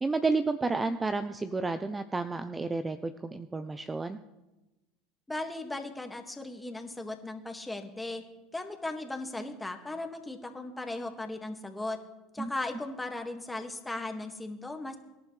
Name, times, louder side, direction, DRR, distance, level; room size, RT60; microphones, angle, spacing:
voice 1, 0.0-4.2 12.4-12.5, right 3 dB, 20° right, 11 dB, 0.7 m, -31 dB
voice 2, 5.3-8.2 8.5-12.0 12.3-15.0, left 2 dB, 10° left, 5 dB, 2.0 m, -37 dB
24.0 x 11.0 x 3.3 m, 1.1 s
hypercardioid pair, 85°, 0 cm